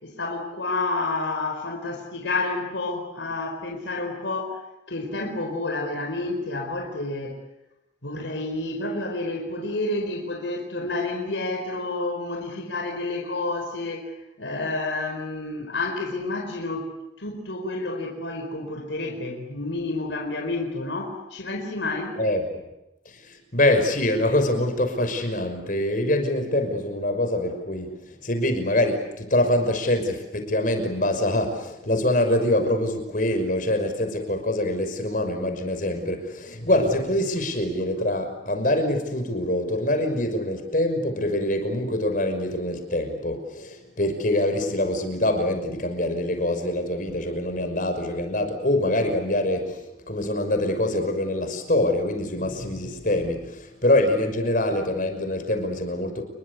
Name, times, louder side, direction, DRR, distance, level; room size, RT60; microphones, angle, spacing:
voice 1, 0.0-4.6 4.9-7.4 8.0-22.2, left 2 dB, 75° left, 2 dB, 4.6 m, -30 dB
voice 2, 22.2-22.6 23.1-56.2, left 1 dB, 45° left, 6 dB, 5.9 m, -24 dB
29.5 x 22.5 x 8.3 m, 0.90 s
head